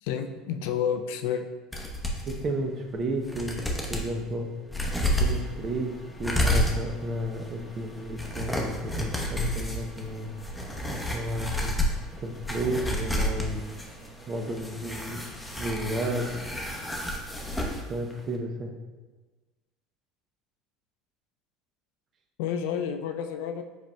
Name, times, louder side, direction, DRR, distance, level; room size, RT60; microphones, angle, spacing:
voice 1, 0.0-1.5 22.4-23.6, left 8 dB, 75° left, 7 dB, 0.3 m, -30 dB
sound 1, 1.7-2.4 2.9-3.0 3.2-4.1 4.7-17.8 18.1-18.2, equal, 5° left, 0.8 m, -31 dB
voice 2, 2.3-3.6 3.9-4.5 5.2-10.3 11.1-11.7 12.2-13.7 14.3-15.2 15.6-16.3 17.9-18.7, right 1 dB, 45° right, 4 dB, 0.6 m, -32 dB
4.9 x 4.2 x 2.2 m, 1.2 s
hypercardioid pair, 85°, 0 cm